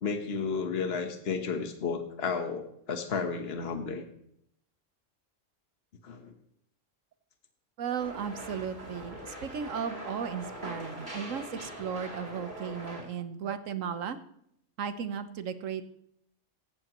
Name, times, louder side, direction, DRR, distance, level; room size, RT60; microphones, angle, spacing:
voice 1, 0.0-4.0 6.0-6.3, left 5 dB, 55° left, 6 dB, 1.4 m, -32 dB
voice 2, 7.8-14.2 14.8-15.8, right 7 dB, 80° right, 10 dB, 1.3 m, -35 dB
sound 1, 8.0-13.0, right 1 dB, 35° right, 3.3 m, -42 dB
16.5 x 13.0 x 3.0 m, 0.73 s
omnidirectional pair, 1.3 m